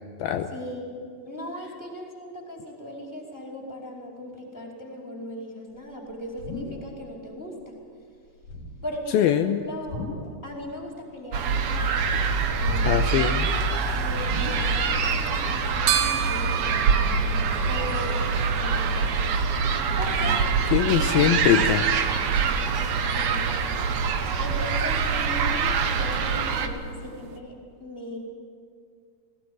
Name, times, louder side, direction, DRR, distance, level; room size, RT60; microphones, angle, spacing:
voice 1, 0.5-1.0 1.2-7.7 8.8-10.1 10.4-12.0 12.5-13.1 13.5-13.6 14.0-18.2 18.6-19.6 20.0-21.3 22.2-28.2, left 1 dB, 5° left, -1 dB, 4.4 m, -38 dB
sound 1, 5.8-7.2 7.4-7.8 8.3-9.0 9.7-10.5 10.8-11.8 12.1-13.3 13.6-13.7 14.2-15.0 15.4-17.3, left 2 dB, 50° left, 3.0 m, -38 dB
voice 2, 9.1-9.6 12.8-13.5 20.2-20.4 20.7-21.9, left 10 dB, 80° left, 7 dB, 2.6 m, -22 dB
sound 2, 11.3-26.7, right 5 dB, 65° right, 1.8 m, -24 dB
sound 3, 14.9-27.4, right 9 dB, 80° right, 3.1 m, -36 dB
20.5 x 17.0 x 9.7 m, 2.1 s
omnidirectional pair, 4.5 m